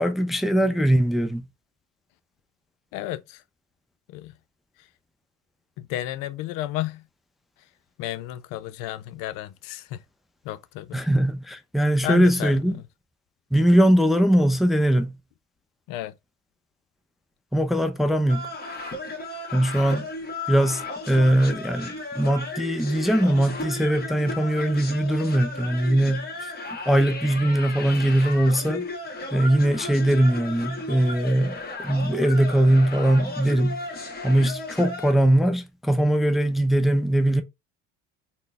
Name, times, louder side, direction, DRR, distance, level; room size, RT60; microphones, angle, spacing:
voice 1, 0.0-1.4 10.9-12.8 13.5-15.2 17.5-18.5 19.5-20.1 20.5-26.5 26.9-28.8 29.3-33.8 34.2-37.4, right 1 dB, ahead, 0.4 m, -21 dB
voice 2, 2.9-3.4 4.1-4.4 4.8-4.9 5.8-7.1 7.6-7.7 8.0-10.0 10.4-11.0 12.0-12.8 15.9-16.2, left 14 dB, 60° left, 0.5 m, -33 dB
sound 1, 18.3-35.1, left 2 dB, 25° left, 1.3 m, -35 dB
3.8 x 2.1 x 3.4 m
hypercardioid pair, 70°, 37 cm